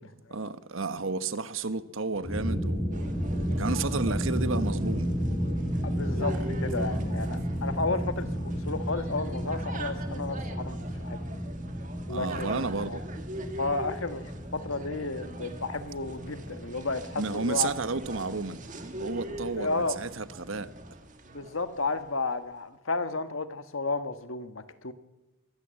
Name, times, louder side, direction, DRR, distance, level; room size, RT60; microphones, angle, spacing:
voice 1, 0.3-3.1 3.5-5.1 6.4-6.5 6.8-7.0 12.1-13.0 17.2-18.6 19.0-20.7, right 4 dB, 70° right, 1.1 m, -32 dB
sound 1, 2.1-21.0, equal, 5° left, 3.3 m, -33 dB
sound 2, 2.9-22.2, right 1 dB, 35° right, 2.0 m, -43 dB
voice 2, 5.8-10.8 11.0-11.2 12.1-13.0 13.6-14.2 14.5-17.7 19.3-20.0 21.3-24.9, left 3 dB, 70° left, 1.4 m, -32 dB
23.0 x 16.0 x 7.7 m
head